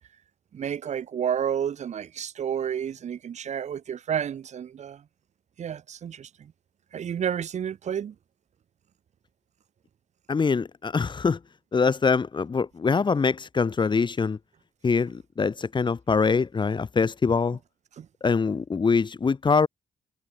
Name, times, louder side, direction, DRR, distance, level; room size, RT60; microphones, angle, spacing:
voice 1, 0.5-5.0 5.6-6.5 6.9-8.1 18.0-18.1, right 8 dB, 60° right, 3.4 m, -30 dB
voice 2, 10.3-11.4 11.7-14.4 14.8-17.6 18.2-19.7, left 5 dB, 35° left, 2.7 m, -24 dB
cardioid pair, 85°, 13 cm